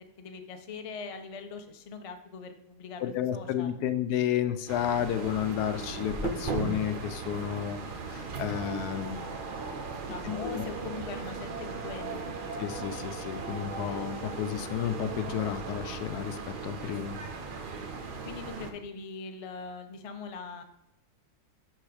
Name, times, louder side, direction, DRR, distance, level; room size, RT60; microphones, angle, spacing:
voice 1, 0.2-3.8 10.1-12.3 18.2-20.6, left 4 dB, 55° left, 6 dB, 0.3 m, -41 dB
voice 2, 3.0-7.8 8.1-9.3 10.2-10.6 12.6-17.2, left 10 dB, 80° left, 11 dB, 1.2 m, -32 dB
sound 1, 4.7-18.7, right 4 dB, 45° right, 0.7 m, -37 dB
6.4 x 6.1 x 4.9 m, 0.83 s
omnidirectional pair, 1.7 m